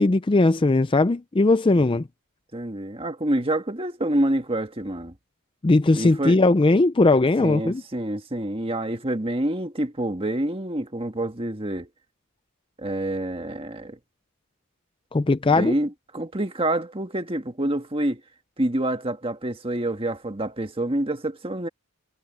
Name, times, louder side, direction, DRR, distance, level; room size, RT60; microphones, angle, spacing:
voice 1, 0.0-2.1 5.6-7.8 15.1-15.7, left 2 dB, 25° left, 0.4 m, -19 dB
voice 2, 2.5-5.1 6.0-6.4 7.4-11.9 12.8-14.0 15.5-18.2 18.6-21.7, right 1 dB, 25° right, 1.6 m, -27 dB
head